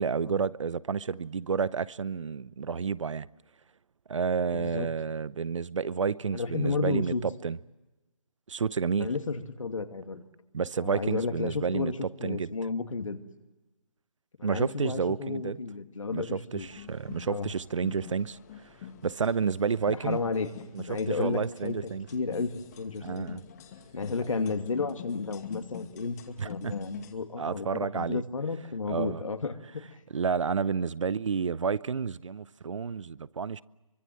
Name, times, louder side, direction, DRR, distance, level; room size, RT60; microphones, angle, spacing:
voice 1, 0.0-3.3 4.1-7.6 8.5-9.1 10.5-11.9 12.2-12.5 14.4-15.6 16.1-18.4 19.0-20.2 20.7-22.1 23.0-23.4 26.4-26.7 27.4-28.2 28.9-29.2 30.1-33.6, right 6 dB, 65° right, 0.8 m, -30 dB
voice 2, 4.5-4.9 6.3-7.2 9.0-10.2 10.8-13.2 14.4-16.7 17.3-17.5 19.9-20.5 20.9-22.5 22.8-23.4 23.9-29.8, left 4 dB, 70° left, 2.6 m, -32 dB
sound 1, 16.6-27.1, left 7 dB, 30° left, 2.3 m, -46 dB
24.5 x 24.0 x 7.7 m
figure-of-eight pair, 155°, 17 cm